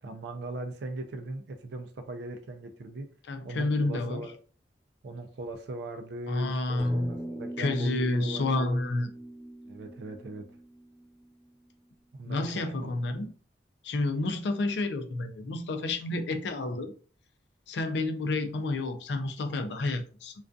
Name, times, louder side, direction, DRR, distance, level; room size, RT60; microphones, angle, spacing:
voice 1, 0.0-3.1 3.4-4.4 5.0-8.8 9.7-10.4 12.2-12.9, right 2 dB, 75° right, 0.4 m, -39 dB
voice 2, 3.3-4.2 6.3-7.1 7.6-9.1 12.2-13.3 13.8-16.9 17.7-20.3, left 2 dB, 80° left, 0.4 m, -29 dB
sound 1, 6.8-11.4, right 1 dB, 5° left, 0.6 m, -41 dB
2.3 x 2.3 x 2.5 m
head